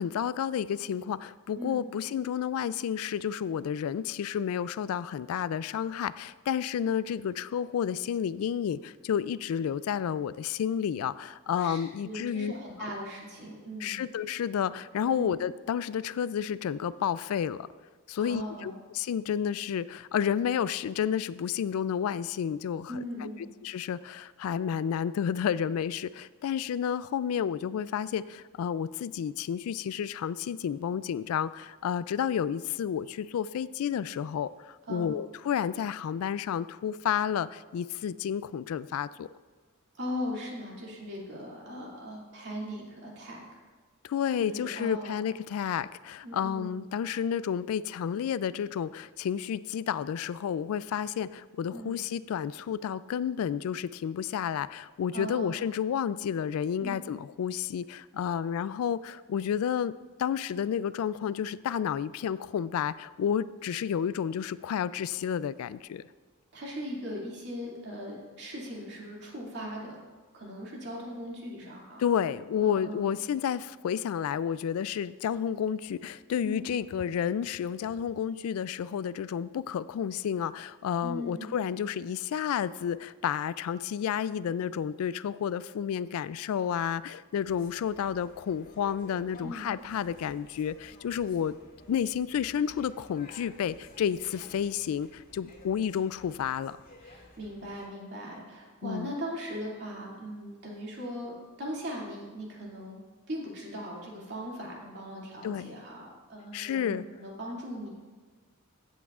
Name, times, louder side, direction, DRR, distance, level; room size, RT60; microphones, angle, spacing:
voice 1, 0.0-12.5 13.8-17.7 18.1-22.9 23.2-23.3 23.6-39.3 44.0-66.0 72.0-91.5 91.9-96.8 98.8-99.1 105.4-105.7 106.5-107.0, left 8 dB, 75° left, 17 dB, 0.3 m, -31 dB
voice 2, 11.6-14.0 15.1-15.3 18.2-18.7 22.9-23.5 34.9-35.1 40.0-43.6 44.4-45.2 46.2-46.8 51.7-52.0 55.1-55.6 56.8-57.0 66.5-70.0 70.3-72.1 72.6-73.1 76.4-76.7 81.0-81.6 89.4-89.7 97.0-101.3 101.6-103.0 103.3-107.9, equal, 50° right, -3 dB, 2.4 m, -39 dB
sound 1, 87.4-97.9, left 2 dB, 40° left, 2.1 m, -54 dB
15.0 x 8.4 x 2.4 m, 1.4 s
head